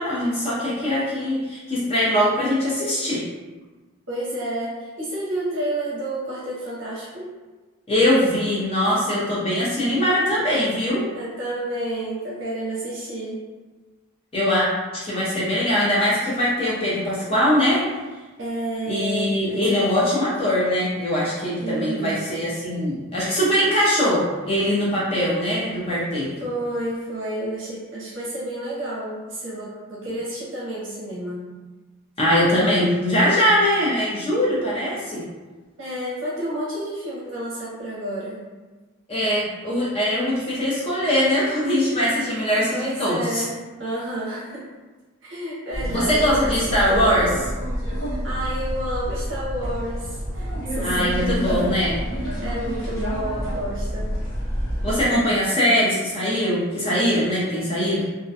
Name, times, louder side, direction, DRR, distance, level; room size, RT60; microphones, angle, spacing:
voice 1, 0.0-3.2 7.9-11.0 14.3-14.7 14.9-17.8 18.9-26.3 32.2-35.2 39.1-43.4 45.9-47.3 50.8-51.9 54.8-58.0, equal, 25° left, -7 dB, 0.5 m, -21 dB
voice 2, 4.1-7.3 11.1-13.4 18.4-20.0 21.6-22.1 26.4-31.4 35.8-38.4 42.7-44.7 45.2-47.5 48.2-51.7 52.2-54.1, right 1 dB, 60° right, -7 dB, 0.6 m, -30 dB
sound 1, 45.7-55.1, equal, 65° left, 1.1 m, -28 dB
2.3 x 2.1 x 2.6 m, 1.3 s
head